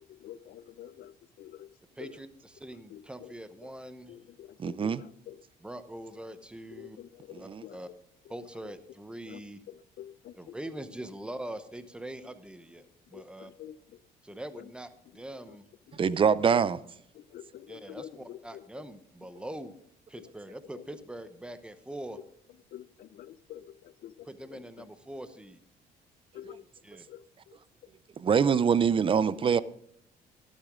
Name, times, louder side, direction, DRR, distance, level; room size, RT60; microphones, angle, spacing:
voice 1, 0.0-1.7 2.0-2.2 2.7-3.4 3.6-3.7 4.1-5.4 6.7-7.9 8.6-8.7 9.2-10.5 12.2-12.3 12.8-14.0 14.3-14.7 15.1-15.6 15.9-16.2 17.1-18.8 19.3-19.5 20.2-20.3 20.7-20.8 22.7-24.9 26.3-26.6 27.1-27.6 27.8-27.9, left 11 dB, 60° left, 0.6 m, -48 dB
voice 2, 2.0-4.2 5.6-7.0 7.4-7.9 8.3-9.6 10.4-13.5 14.2-15.7 17.7-19.7 20.1-22.2 24.3-25.6 26.8-27.0, right 1 dB, 5° right, 0.9 m, -43 dB
voice 3, 4.6-5.0 7.5-7.6 15.9-16.8 28.2-29.6, right 7 dB, 30° right, 0.5 m, -24 dB
12.5 x 11.5 x 3.7 m
cardioid pair, 110°, 17 cm